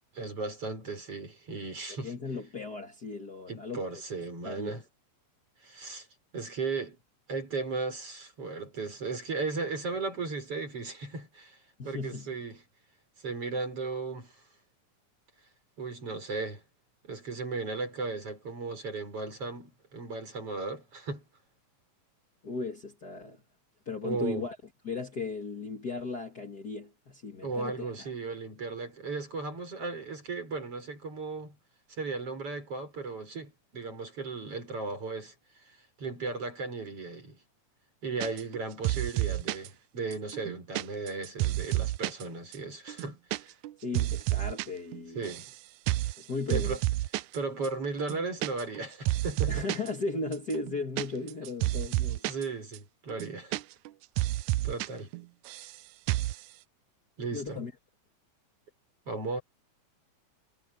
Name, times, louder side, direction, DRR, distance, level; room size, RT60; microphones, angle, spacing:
voice 1, 0.1-2.1 3.5-4.8 5.6-6.1 6.3-7.0 7.3-11.6 11.8-12.6 13.2-14.3 15.8-16.6 17.0-21.2 24.0-24.4 27.4-31.6 32.0-35.3 36.0-37.4 38.0-43.5 45.2-45.5 46.5-46.8 47.3-49.7 52.3-53.6 54.6-55.1 57.2-57.6 59.1-59.4, right 3 dB, 50° right, 7.5 m, -36 dB
voice 2, 1.9-3.8 4.4-4.8 11.8-12.3 22.4-23.4 23.9-24.6 24.8-28.1 43.8-45.3 46.2-46.8 49.5-52.2 57.3-57.7, left 3 dB, 35° left, 2.3 m, -36 dB
sound 1, 38.2-38.6 38.8-39.7 40.1-42.2 42.5-42.6 42.9-43.4 43.6-44.7 44.9-45.5 45.9-46.2 46.5-47.4 47.6-47.7 48.0-48.8 49.1-49.9 50.3-52.5 52.7-52.8 53.1-53.9 54.2-54.9 55.1-55.8 56.1-56.4, right 17 dB, 80° right, 1.9 m, -30 dB
omnidirectional pair, 3.4 m